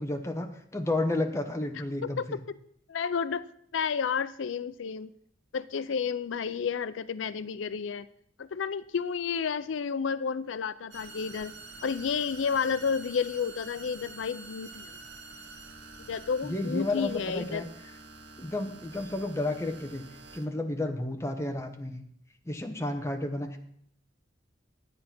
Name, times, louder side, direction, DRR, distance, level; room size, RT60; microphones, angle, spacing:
voice 1, 0.0-2.4 16.4-17.6 18.4-20.0 20.3-22.0 22.5-23.6, left 2 dB, 15° left, 4 dB, 1.0 m, -32 dB
voice 2, 2.0-2.4 2.9-3.4 3.7-5.1 5.5-8.1 8.4-11.5 11.8-14.9 16.1-17.7, left 6 dB, 90° left, 15 dB, 0.4 m, -31 dB
sound 1, 10.9-20.5, right 3 dB, 75° right, 1.4 m, -47 dB
10.5 x 8.6 x 5.9 m, 0.67 s
head